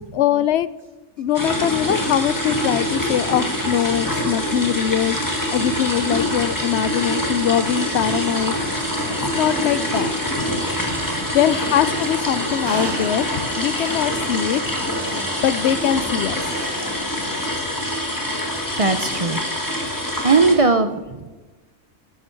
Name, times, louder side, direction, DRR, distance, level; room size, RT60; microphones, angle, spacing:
voice 1, 0.1-0.7 1.2-8.6 9.3-10.1 11.3-14.6 15.1-16.5, left 10 dB, 65° left, 16 dB, 0.8 m, -22 dB
sound 1, 1.3-20.5, equal, 15° left, 2.1 m, -25 dB
sound 2, 8.3-17.4, right 2 dB, 20° right, 1.0 m, -36 dB
voice 2, 10.8-11.1 18.8-19.4 20.2-21.3, right 4 dB, 40° right, 9 dB, 0.5 m, -19 dB
14.0 x 11.5 x 4.5 m, 1.2 s
omnidirectional pair, 1.3 m